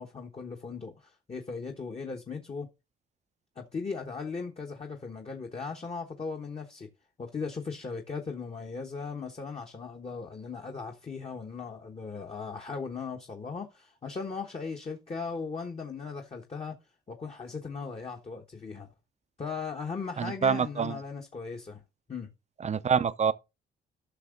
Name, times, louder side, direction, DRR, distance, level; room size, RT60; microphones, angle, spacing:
voice 1, 0.0-2.7 3.6-6.9 7.2-16.8 17.1-18.9 19.4-21.8 22.1-22.3, left 5 dB, 30° left, 1.2 m, -38 dB
voice 2, 20.2-21.0 22.6-23.3, right 6 dB, 35° right, 0.6 m, -26 dB
11.5 x 6.1 x 3.7 m
cardioid pair, 90°, 20 cm